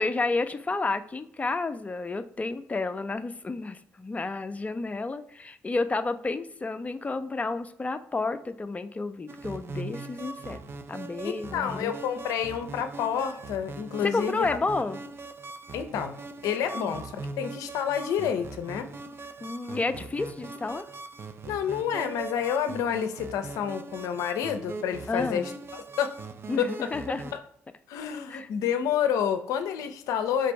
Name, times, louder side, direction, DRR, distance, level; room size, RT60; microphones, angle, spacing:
voice 1, 0.0-10.6 10.9-12.0 14.0-15.0 16.7-17.0 19.4-20.9 25.1-25.5 26.5-27.2 28.3-28.5, left 3 dB, 25° left, 9 dB, 0.5 m, -31 dB
sound 1, 9.3-27.4, right 3 dB, 45° right, 0.5 m, -41 dB
voice 2, 11.2-14.6 15.7-17.1 17.4-18.9 21.5-26.1 26.6-26.9 27.3-27.4 27.9-30.5, left 8 dB, 75° left, 8 dB, 0.5 m, -29 dB
3.8 x 2.5 x 4.3 m, 0.68 s
hypercardioid pair, 50°, 6 cm